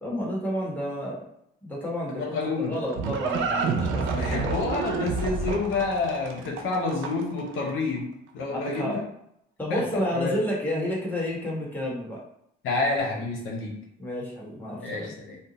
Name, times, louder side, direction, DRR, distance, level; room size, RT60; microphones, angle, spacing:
voice 1, 0.0-1.2 1.6-4.5 8.6-8.9 9.6-12.2 14.0-15.1, equal, 10° left, -5 dB, 1.2 m, -30 dB
voice 2, 2.1-2.8 4.2-8.1 8.3-9.0 9.7-10.4 12.6-13.7 14.8-15.4, left 3 dB, 85° left, -1 dB, 0.7 m, -28 dB
Livestock farm animals working animals, 2.3-7.4, right 4 dB, 75° right, 0.5 m, -29 dB
2.6 x 2.1 x 3.9 m, 0.76 s
cardioid pair, 90°, 20 cm